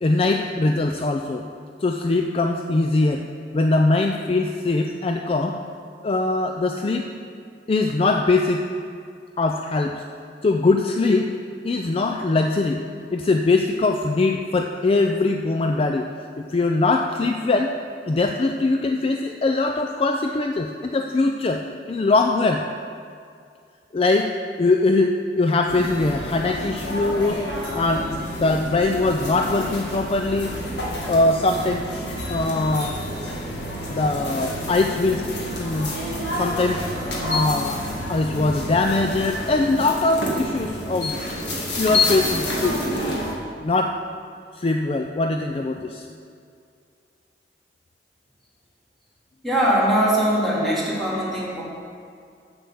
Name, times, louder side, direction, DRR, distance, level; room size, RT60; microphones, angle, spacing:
voice 1, 0.0-1.4 1.8-3.2 3.5-5.6 6.0-7.1 7.7-8.6 9.4-10.0 10.4-11.3 11.6-12.8 13.1-16.1 16.4-17.8 18.1-21.6 21.9-22.6 23.9-24.3 24.6-27.4 27.7-30.6 31.1-33.0 33.9-35.2 35.5-35.9 36.3-36.8 37.1-37.8 38.1-41.2 41.8-43.0 43.6-44.0 44.5-46.1, left 3 dB, 30° left, 4 dB, 0.4 m, -22 dB
sound 1, 25.7-43.3, left 1 dB, 75° left, 1.9 m, -29 dB
voice 2, 49.4-51.6, right 1 dB, ahead, -8 dB, 2.4 m, -21 dB
7.3 x 7.1 x 7.1 m, 2.3 s
head